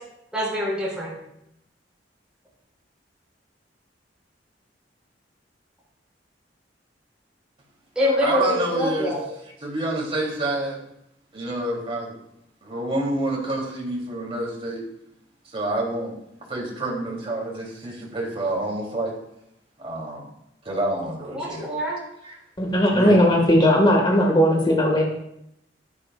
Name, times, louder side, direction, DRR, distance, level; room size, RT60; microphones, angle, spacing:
voice 1, 0.3-1.1 8.0-9.3 21.3-22.0, left 1 dB, 5° right, -5 dB, 4.5 m, -24 dB
voice 2, 8.1-9.1 9.6-10.8 11.3-12.1 12.6-14.8 15.5-16.1 16.5-19.1 19.8-20.2 20.6-21.7 22.2-22.4 22.9-23.2, right 2 dB, 35° right, -3 dB, 3.3 m, -28 dB
voice 3, 22.6-25.0, equal, 25° left, 0 dB, 1.8 m, -18 dB
13.0 x 11.0 x 2.5 m, 0.79 s
head